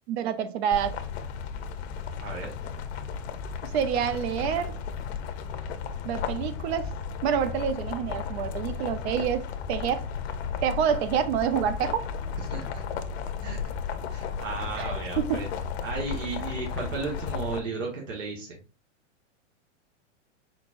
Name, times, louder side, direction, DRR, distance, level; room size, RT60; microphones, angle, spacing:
voice 1, 0.1-1.0 3.6-4.8 6.0-6.9 7.2-10.0 10.6-12.1 14.8-15.5, right 8 dB, 55° right, 0.7 m, -27 dB
sound 1, 0.7-17.6, left 6 dB, 55° left, 0.7 m, -34 dB
voice 2, 2.2-2.5 12.5-12.8 13.4-13.6 14.1-15.5 15.8-18.6, right 4 dB, 80° right, 1.5 m, -34 dB
4.3 x 4.3 x 2.5 m
hypercardioid pair, 140°, 37 cm